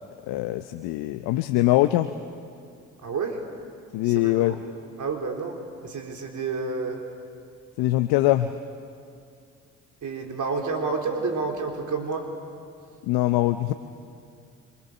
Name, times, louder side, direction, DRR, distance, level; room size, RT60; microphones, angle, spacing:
voice 1, 0.3-2.1 3.9-4.6 7.8-8.5 13.1-13.7, left 16 dB, 70° left, 9 dB, 0.9 m, -22 dB
voice 2, 3.0-3.4 4.0-4.6 5.0-7.0 10.0-12.3, right 4 dB, 50° right, 2 dB, 4.1 m, -30 dB
28.5 x 26.5 x 6.8 m, 2.3 s
hypercardioid pair, 55°, 37 cm